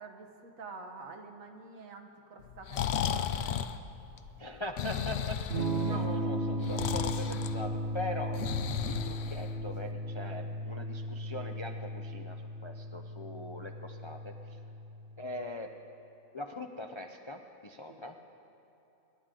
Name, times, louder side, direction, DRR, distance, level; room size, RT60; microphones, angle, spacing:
voice 1, 0.0-3.6 5.9-6.0 8.8-9.1 17.9-18.1, right 4 dB, 75° right, 4 dB, 1.5 m, -48 dB
Breathing, 2.4-9.9, left 9 dB, 65° left, 0.7 m, -35 dB
voice 2, 4.4-5.4 5.8-8.4 8.9-12.4 12.6-14.3 15.2-15.7 16.3-18.1, left 1 dB, 40° left, 3 dB, 0.4 m, -41 dB
Electric guitar / Strum, 5.5-15.3, right 1 dB, 50° right, 1.0 m, -36 dB
26.0 x 11.5 x 3.8 m, 3.0 s
omnidirectional pair, 1.4 m